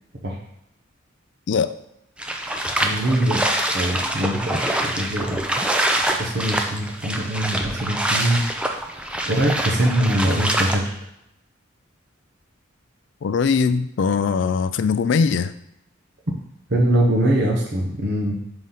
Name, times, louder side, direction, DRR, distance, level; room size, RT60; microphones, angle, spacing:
sound 1, 2.2-10.8, right 1 dB, 5° right, 0.4 m, -25 dB
voice 1, 2.8-3.5 3.7-5.4 6.0-8.5 9.2-10.9 16.7-18.4, right 1 dB, 55° right, -1 dB, 1.0 m, -22 dB
voice 2, 13.2-15.5, left 5 dB, 60° left, 12 dB, 0.3 m, -21 dB
4.9 x 3.9 x 5.7 m, 0.82 s
head